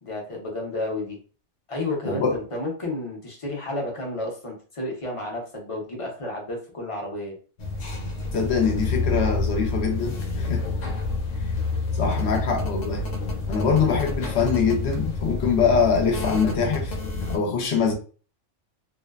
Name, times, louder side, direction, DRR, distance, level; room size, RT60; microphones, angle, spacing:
voice 1, 0.0-1.2 1.7-7.3, left 2 dB, 30° left, 0.7 m, -31 dB
voice 2, 2.0-2.4 8.3-10.8 12.0-13.1 13.5-17.0 17.3-17.9, left 5 dB, 65° left, 0.9 m, -23 dB
sound 1, 7.6-17.4, left 3 dB, 90° left, 1.0 m, -28 dB
2.5 x 2.1 x 2.3 m
omnidirectional pair, 1.3 m